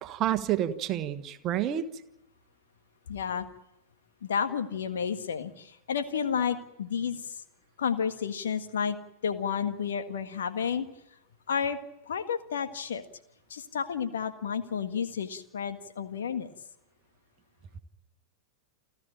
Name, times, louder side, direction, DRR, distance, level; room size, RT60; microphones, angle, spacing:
voice 1, 0.0-1.8, right 11 dB, 35° right, 11 dB, 1.4 m, -29 dB
voice 2, 3.1-3.5 4.2-7.4 7.8-9.0 9.2-10.9 11.5-11.8 12.1-13.0 13.5-16.5, left 7 dB, 65° left, 9 dB, 1.7 m, -31 dB
29.5 x 13.0 x 8.9 m, 0.84 s
figure-of-eight pair, 90°, 0 cm